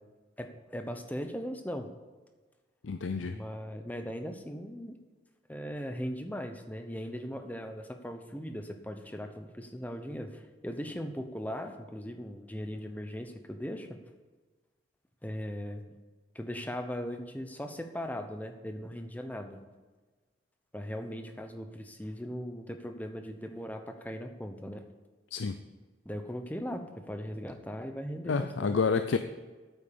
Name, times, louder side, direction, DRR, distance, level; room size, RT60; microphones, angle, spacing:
voice 1, 0.4-1.9 3.2-5.0 5.5-14.0 15.2-15.9 16.3-19.6 20.7-24.8 26.0-28.8, equal, 10° left, 6 dB, 0.9 m, -39 dB
voice 2, 2.8-3.4 25.3-25.6 28.3-29.2, left 5 dB, 85° left, 9 dB, 0.5 m, -29 dB
9.0 x 8.7 x 6.9 m, 1.3 s
head